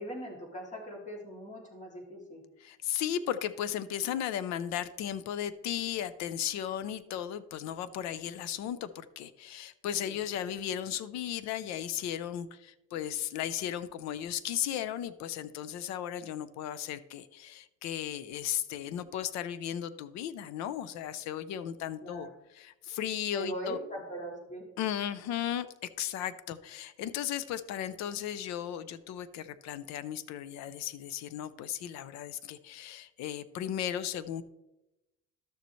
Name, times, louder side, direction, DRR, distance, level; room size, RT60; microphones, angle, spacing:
voice 1, 0.0-2.4 10.1-10.2 22.0-22.3 23.3-24.6, equal, 25° left, -1 dB, 2.6 m, -40 dB
voice 2, 2.6-22.3 22.5-23.8 24.8-25.7 26.0-34.4, left 10 dB, 65° left, 15 dB, 0.6 m, -35 dB
12.0 x 6.8 x 3.1 m, 0.94 s
cardioid pair, 135°, 30 cm